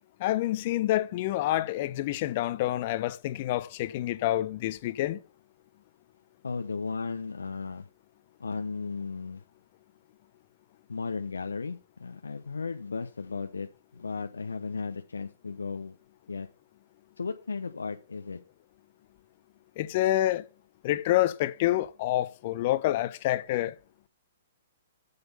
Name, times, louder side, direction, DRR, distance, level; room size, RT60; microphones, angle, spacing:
voice 1, 0.2-5.2 19.8-20.4 20.8-23.7, left 14 dB, 45° left, 0.9 m, -27 dB
voice 2, 6.4-7.9 8.4-9.4 10.9-13.7 13.9-16.0 16.3-16.5 17.2-18.4, left 4 dB, 85° left, 0.8 m, -35 dB
8.0 x 6.9 x 5.4 m
hypercardioid pair, 120°, 0 cm